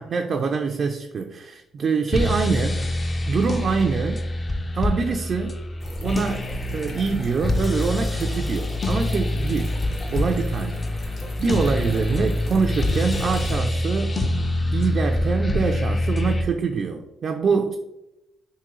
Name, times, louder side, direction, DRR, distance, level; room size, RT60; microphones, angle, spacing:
voice 1, 0.0-2.8 3.3-4.2 4.7-5.6 6.0-9.8 10.1-11.1 11.4-14.2 14.7-17.8, right 5 dB, 50° right, 3 dB, 0.3 m, -25 dB
sound 1, 2.1-16.4, left 1 dB, 30° left, 0.4 m, -25 dB
sound 2, 5.8-13.6, equal, 45° left, 1.0 m, -36 dB
3.6 x 2.7 x 3.0 m, 0.91 s
cardioid pair, 90°, 0 cm